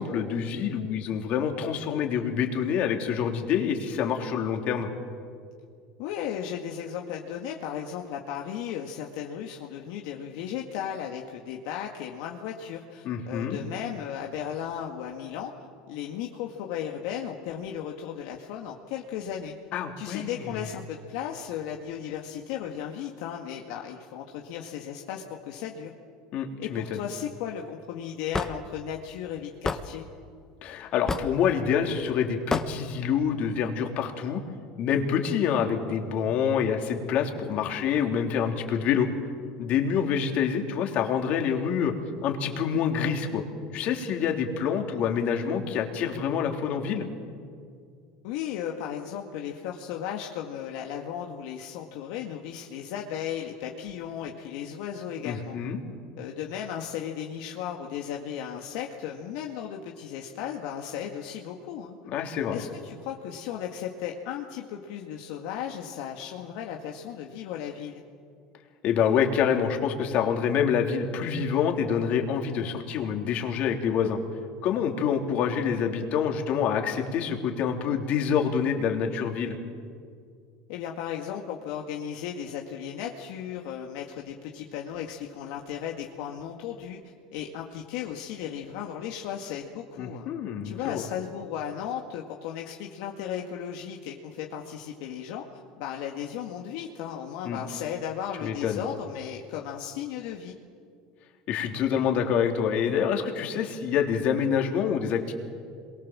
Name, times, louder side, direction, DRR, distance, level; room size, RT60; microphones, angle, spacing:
voice 1, 0.0-4.9 13.0-13.6 19.7-20.4 26.3-27.0 30.6-34.4 34.8-39.1 39.6-41.9 42.2-43.4 43.7-47.1 55.2-55.8 62.1-62.6 68.8-74.2 74.6-79.6 90.0-91.0 97.4-97.6 98.4-98.8 101.5-105.3, left 7 dB, 55° left, 3 dB, 3.5 m, -27 dB
voice 2, 6.0-15.5 15.9-19.5 20.0-25.9 26.6-30.1 48.2-55.6 56.2-62.0 62.5-68.0 80.7-90.3 90.6-100.5, left 9 dB, 75° left, 1 dB, 2.0 m, -35 dB
Hammer / Wood, 28.3-28.5 29.6-29.8 31.1-31.4 32.5-32.7, left 4 dB, 15° left, 1.4 m, -27 dB
27.5 x 23.0 x 7.5 m, 2.2 s
supercardioid pair, 110°, 3 cm